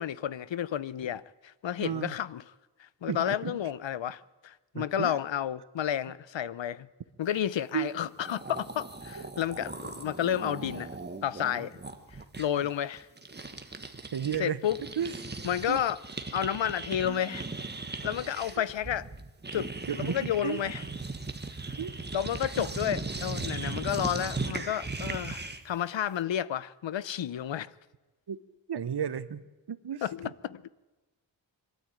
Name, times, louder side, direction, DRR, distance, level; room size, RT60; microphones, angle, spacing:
voice 1, 0.0-2.4 2.8-6.9 7.2-10.9 11.2-11.7 12.4-13.1 14.4-14.8 15.4-16.0 16.3-17.5 18.0-19.1 19.5-19.7 20.0-20.8 22.1-27.7 30.0-30.7, left 10 dB, 75° left, 0.7 m, -31 dB
voice 2, 1.8-2.1 3.1-3.6 4.7-5.2 7.7-7.9 14.1-14.6 15.0-15.1 15.7-15.8 17.1-17.2 19.9-20.2 20.4-20.6 21.8-21.9 22.6-22.7 28.3-28.4 28.7-29.4 29.7-30.0, right 8 dB, 60° right, 1.0 m, -32 dB
sound 1, 7.9-8.0 8.2-14.4 14.6-25.7, right 3 dB, 20° right, 1.4 m, -38 dB
22.5 x 13.0 x 9.1 m
wide cardioid pair, 130°, 45 cm